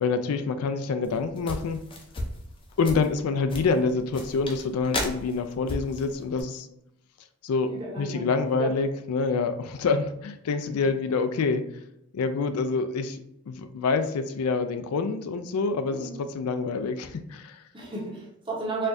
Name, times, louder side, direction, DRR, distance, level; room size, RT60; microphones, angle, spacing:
voice 1, 0.0-1.8 2.8-6.7 7.4-7.7 8.0-11.6 12.1-17.6, left 4 dB, 90° left, 9 dB, 0.4 m, -27 dB
sound 1, 1.0-6.4, left 1 dB, 25° left, 0.4 m, -35 dB
voice 2, 7.7-8.3 8.6-8.7 15.9-16.1 17.7-18.9, right 3 dB, 25° right, -3 dB, 0.8 m, -33 dB
4.3 x 2.3 x 2.5 m, 0.79 s
head